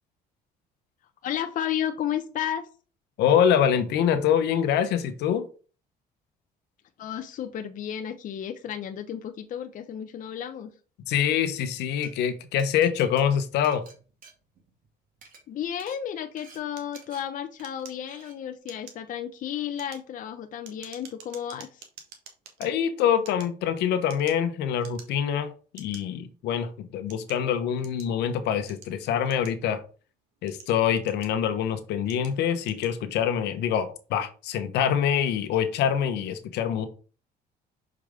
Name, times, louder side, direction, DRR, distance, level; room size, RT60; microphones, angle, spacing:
voice 1, 1.2-2.6 7.0-10.7 15.5-21.9, left 9 dB, 50° left, 7 dB, 0.7 m, -33 dB
voice 2, 3.2-5.4 11.1-13.8 22.6-29.8 30.4-36.9, left 8 dB, 80° left, 9 dB, 1.0 m, -25 dB
Glass, 12.0-12.1 12.6-14.9 15.1-15.4 15.8-16.0 16.4-16.6 16.9-17.2 17.6-17.8 18.1-18.3, right 3 dB, 55° right, 2.4 m, -51 dB
sound 1, 16.8-18.3 18.6-19.1 19.6-22.7 23.2-24.5 24.8-25.3 25.8-26.0 26.7-28.2 28.7-29.9 30.3-31.5 32.1-32.4 32.6-33.0, right 7 dB, 90° right, 1.5 m, -49 dB
6.4 x 4.8 x 3.6 m, 0.37 s
cardioid pair, 110°, 17 cm